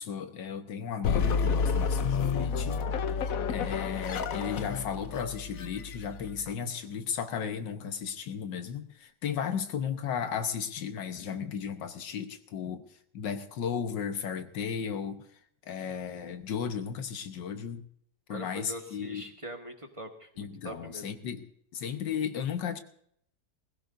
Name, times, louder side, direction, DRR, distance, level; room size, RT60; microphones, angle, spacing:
voice 1, 0.0-2.8 3.2-12.8 13.1-15.2 15.6-17.8 18.3-19.2 20.4-21.5 21.7-22.8, left 7 dB, 80° left, 8 dB, 1.8 m, -35 dB
sound 1, 1.0-6.5, left 6 dB, 60° left, 1.1 m, -30 dB
voice 2, 18.3-21.1, right 1 dB, 20° right, 3 dB, 1.4 m, -42 dB
21.0 x 15.5 x 2.6 m, 0.67 s
omnidirectional pair, 1.9 m